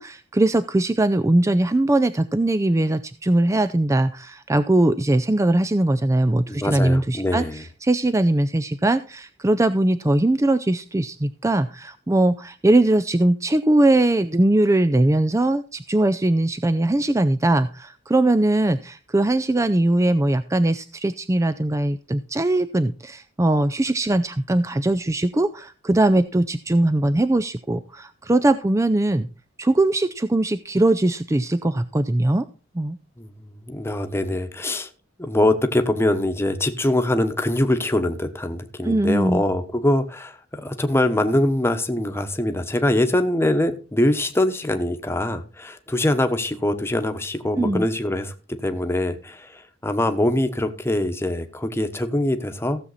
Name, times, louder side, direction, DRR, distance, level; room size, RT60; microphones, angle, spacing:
voice 1, 0.0-29.3 29.6-32.5 32.7-33.0 38.8-39.4 47.6-47.8, right 1 dB, 15° right, 11 dB, 0.4 m, -20 dB
voice 2, 6.5-7.6 33.2-34.9 35.2-48.3 48.6-52.8, left 1 dB, 15° left, 7 dB, 1.1 m, -23 dB
15.5 x 7.3 x 4.1 m, 0.35 s
head